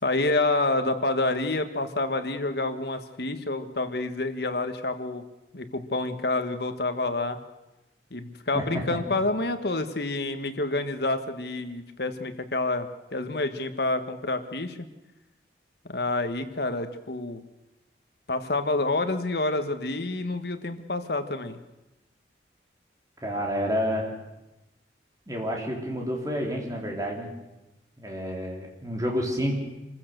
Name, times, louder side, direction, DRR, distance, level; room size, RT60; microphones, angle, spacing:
voice 1, 0.0-5.2 5.5-7.4 8.1-14.9 15.8-17.5 18.3-21.6, left 2 dB, 65° left, 8 dB, 1.5 m, -28 dB
voice 2, 8.5-9.0 23.2-24.1 25.3-27.3 28.0-29.5, equal, 20° right, 0 dB, 3.6 m, -29 dB
26.0 x 15.5 x 6.7 m, 0.99 s
head